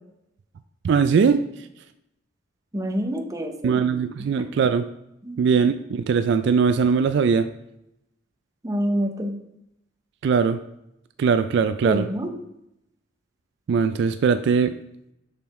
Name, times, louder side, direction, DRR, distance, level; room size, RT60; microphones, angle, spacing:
voice 1, 0.8-1.4 3.6-4.8 5.4-7.4 10.2-10.6 11.2-12.1 13.7-14.7, right 6 dB, 60° right, 10 dB, 0.3 m, -20 dB
voice 2, 2.7-3.8 4.4-4.5 5.2-5.4 8.6-9.3 11.8-12.3, equal, 20° right, 4 dB, 0.7 m, -27 dB
6.7 x 6.3 x 3.1 m, 0.83 s
head